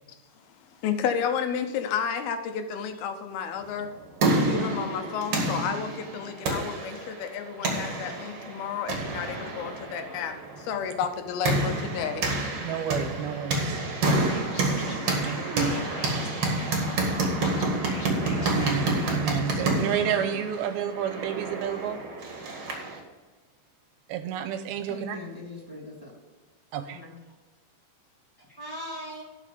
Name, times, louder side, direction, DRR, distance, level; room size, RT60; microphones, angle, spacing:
voice 1, 0.8-3.9 4.3-12.3, left 7 dB, 80° left, 7 dB, 2.7 m, -31 dB
sound 1, 3.8-23.0, right 2 dB, 45° right, 2.5 m, -29 dB
voice 2, 12.6-13.8 15.2-15.8 18.4-22.0 24.1-25.2 26.7-27.0, right 9 dB, 80° right, 9 dB, 2.6 m, -30 dB
Scratching (performance technique), 14.2-19.7, left 3 dB, 55° left, 1.3 m, -44 dB
voice 3, 24.8-26.3 27.0-27.2 28.4-29.2, left 1 dB, 5° left, -4 dB, 1.9 m, -40 dB
12.0 x 6.3 x 5.1 m, 1.3 s
omnidirectional pair, 4.4 m